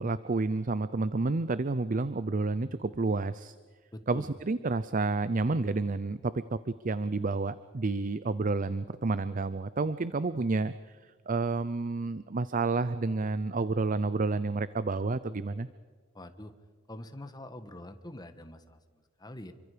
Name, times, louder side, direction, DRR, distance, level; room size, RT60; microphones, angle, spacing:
voice 1, 0.0-3.5 4.1-6.6 6.8-11.0 11.3-15.7, right 3 dB, 45° right, 14 dB, 0.6 m, -30 dB
voice 2, 3.9-4.3 16.1-16.5 16.9-19.5, left 1 dB, 20° left, 9 dB, 1.5 m, -45 dB
28.0 x 24.5 x 5.1 m, 1.6 s
head